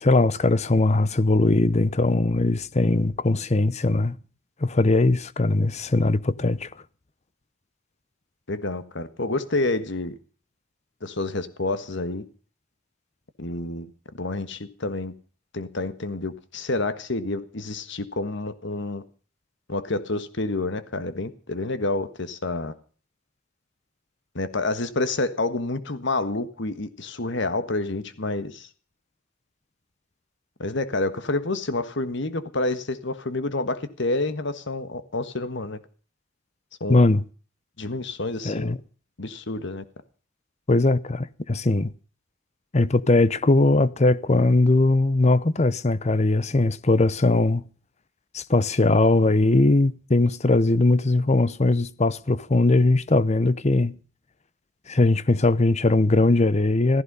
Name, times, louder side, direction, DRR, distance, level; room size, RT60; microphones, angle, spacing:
voice 1, 0.0-4.2 4.6-6.7 36.9-37.2 38.4-38.8 40.7-41.9 42.7-47.6 48.3-54.0 54.9-57.0, left 2 dB, 35° left, 0.8 m, -20 dB
voice 2, 8.5-10.1 11.0-12.2 13.4-13.9 14.2-15.1 15.5-19.0 19.7-22.7 24.3-28.7 30.6-35.8 36.8-37.0 37.8-38.7 39.2-39.8, left 2 dB, 65° left, 1.5 m, -28 dB
15.5 x 15.0 x 5.5 m
head